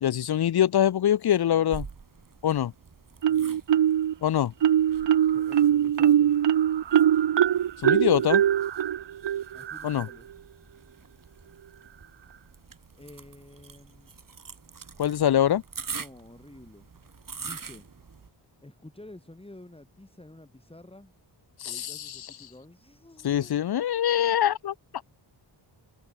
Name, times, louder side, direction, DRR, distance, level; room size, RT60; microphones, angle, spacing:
voice 1, 0.0-1.9 2.4-2.7 4.2-4.5 7.8-8.4 9.8-10.1 15.0-15.6 21.6-22.3 23.2-24.7, left 10 dB, 55° left, 0.6 m, -24 dB
sound 1, 1.7-18.3, right 5 dB, 45° right, 4.0 m, -45 dB
Marimba xylophone, 3.2-4.1 4.6-10.1, right 10 dB, 65° right, 1.0 m, -22 dB
voice 2, 3.3-3.6 5.3-6.3 9.5-10.3 12.9-14.1 15.9-16.9 17.4-17.9 18.6-21.1 21.7-23.5, left 1 dB, 10° left, 6.9 m, -49 dB
wide cardioid pair, 150°, 47 cm